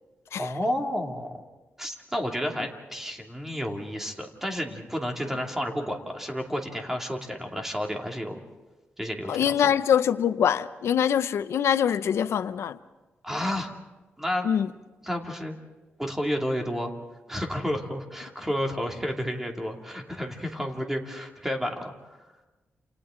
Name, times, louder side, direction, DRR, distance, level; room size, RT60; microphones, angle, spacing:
voice 1, 0.4-1.4 1.8-8.4 9.0-9.3 13.2-13.7 14.2-14.5 15.0-15.5 16.0-16.9 17.3-22.2, equal, 10° right, 2.5 m, -31 dB
voice 2, 9.3-12.8 14.4-14.7, left 8 dB, 85° left, 0.6 m, -24 dB
29.0 x 28.5 x 3.8 m
wide cardioid pair, 120°, 4 cm